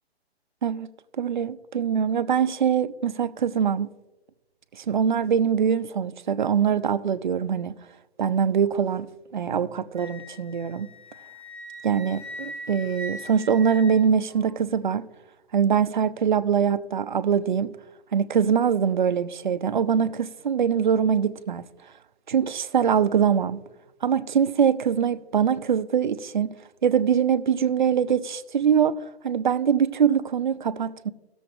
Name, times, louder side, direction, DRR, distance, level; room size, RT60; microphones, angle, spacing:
voice 1, 1.2-3.9 4.7-7.7 8.2-10.9 11.8-15.1 15.5-17.7 18.1-21.6 22.3-23.6 24.0-26.5 26.8-29.0 29.2-31.1, right 7 dB, 50° right, 0.4 m, -23 dB
Wind instrument woodwind instrument, 9.9-14.5, equal, 5° left, 1.4 m, -41 dB
17.0 x 7.0 x 2.4 m
hypercardioid pair, 180°, 32 cm